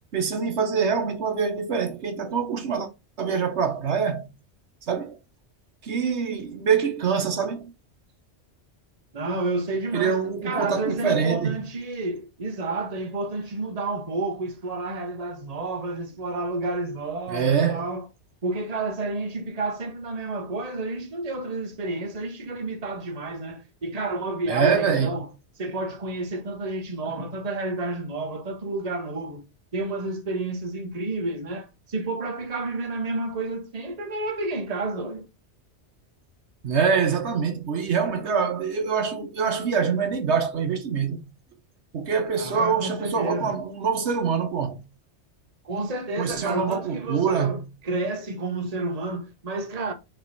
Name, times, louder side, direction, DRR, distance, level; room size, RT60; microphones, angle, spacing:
voice 1, 0.1-2.9 3.2-4.3 4.9-5.2 5.8-7.7 9.9-11.6 17.3-17.9 24.5-25.2 36.6-41.2 41.9-44.8 46.2-47.7, right 6 dB, 75° right, 1.3 m, -25 dB
voice 2, 9.1-18.0 18.4-25.3 25.6-29.4 29.7-35.2 42.4-43.6 45.6-49.9, right 2 dB, 35° right, 1.1 m, -30 dB
6.6 x 3.2 x 4.5 m
omnidirectional pair, 1.2 m